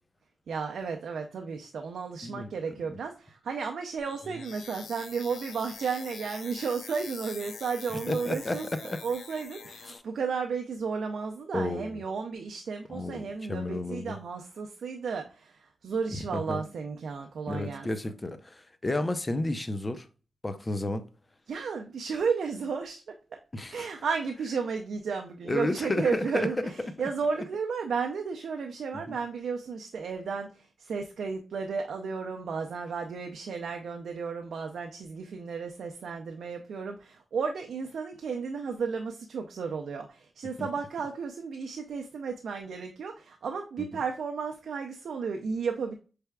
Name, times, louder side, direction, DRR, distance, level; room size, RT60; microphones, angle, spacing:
voice 1, 0.5-17.9 21.5-23.0 23.7-45.9, right 5 dB, 80° right, 0.4 m, -33 dB
sound 1, 4.0-10.0, left 6 dB, 85° left, 0.5 m, -45 dB
voice 2, 8.1-9.0 9.9-10.0 11.5-12.0 12.9-14.2 16.2-16.6 17.5-20.1 20.4-21.0 23.5-23.9 25.4-26.7 29.1-29.2 40.6-40.7 43.9-44.0, left 2 dB, 25° left, 0.6 m, -32 dB
5.6 x 3.3 x 2.2 m
cardioid pair, 70°, 0 cm